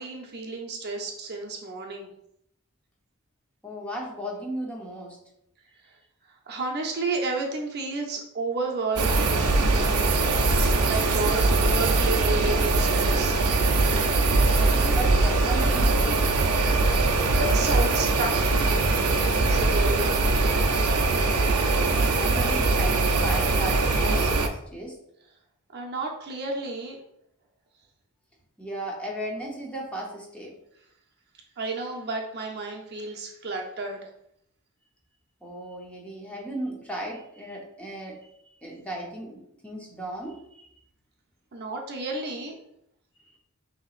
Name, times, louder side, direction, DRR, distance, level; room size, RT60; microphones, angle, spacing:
voice 1, 0.0-2.1 6.5-10.4 10.8-13.4 17.4-20.1 20.8-20.9 25.7-27.0 31.6-34.0 41.5-42.5, right 3 dB, 45° right, 1 dB, 0.7 m, -32 dB
voice 2, 3.6-5.2 11.3-11.7 14.3-16.3 20.4-20.5 22.1-25.0 28.6-30.5 35.4-38.2 38.6-40.6, right 1 dB, 5° left, -2 dB, 0.7 m, -36 dB
sound 1, 9.0-24.5, right 3 dB, 85° right, 0.6 m, -22 dB
6.0 x 2.9 x 2.5 m, 0.75 s
head